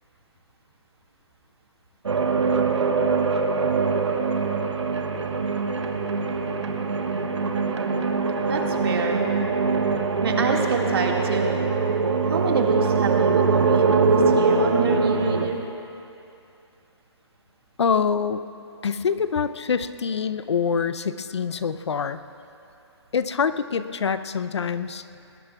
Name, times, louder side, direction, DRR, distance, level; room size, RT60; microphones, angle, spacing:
sound 1, 2.0-15.5, right 4 dB, 80° right, 1.3 m, -23 dB
voice 1, 8.5-9.2 10.2-11.6 12.3-15.6, right 4 dB, 55° right, 0 dB, 2.0 m, -26 dB
voice 2, 17.8-18.4 18.8-22.2 23.1-25.0, left 6 dB, 70° left, 12 dB, 0.6 m, -25 dB
20.0 x 20.0 x 2.4 m, 2.7 s
hypercardioid pair, 155°, 15 cm